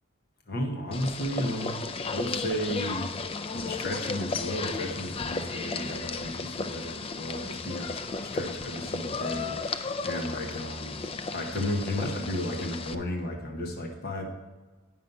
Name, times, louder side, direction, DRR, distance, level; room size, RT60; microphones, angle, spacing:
voice 1, 0.5-1.8 2.1-3.1 3.5-14.3, left 1 dB, 50° left, 2 dB, 0.9 m, -34 dB
sound 1, 0.9-12.9, left 4 dB, 25° left, 0.3 m, -34 dB
9.4 x 5.5 x 5.3 m, 1.2 s
head